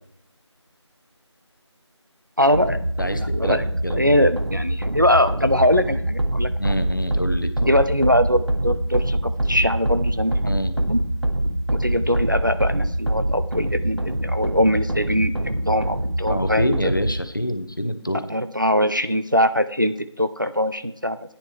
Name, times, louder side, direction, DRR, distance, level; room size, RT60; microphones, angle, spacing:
voice 1, 2.4-2.8 3.3-3.6 4.0-6.8 7.6-11.0 11.7-16.9 18.3-21.2, equal, 40° right, 11 dB, 0.5 m, -22 dB
sound 1, 2.5-17.2, right 1 dB, 60° right, 1.1 m, -25 dB
voice 2, 3.0-4.0 6.6-7.7 10.4-10.7 16.3-18.2, equal, 45° left, 9 dB, 0.8 m, -26 dB
10.5 x 8.8 x 3.3 m, 0.72 s
figure-of-eight pair, 175°, 16 cm